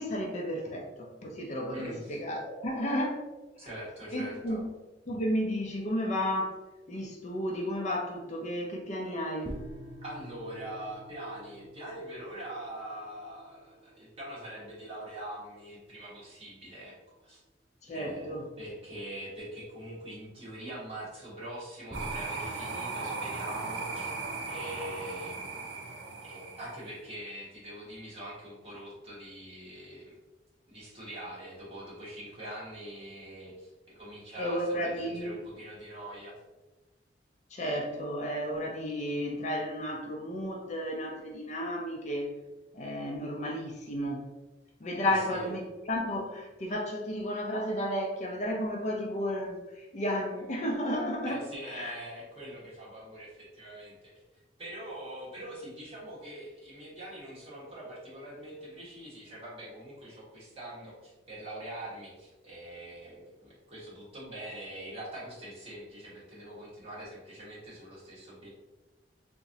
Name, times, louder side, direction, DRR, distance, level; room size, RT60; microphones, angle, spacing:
voice 1, 0.0-3.2 4.1-4.7 5.1-6.6 6.9-9.5 17.8-18.4 34.4-35.3 37.5-42.3 42.7-44.3 44.8-51.4 51.7-51.9, equal, 40° left, 0 dB, 0.5 m, -33 dB
voice 2, 1.7-2.2 3.6-4.6 10.0-17.4 17.9-24.1 24.5-25.7 26.2-30.2 30.7-36.3 45.0-45.5 51.2-68.5, right 1 dB, 35° right, -7 dB, 1.4 m, -43 dB
sound 1, 9.4-16.2 21.9-25.4, equal, 10° right, 0.5 m, -48 dB
sound 2, 21.9-27.0, right 4 dB, 80° right, 0.6 m, -37 dB
3.6 x 3.0 x 2.7 m, 1.1 s
head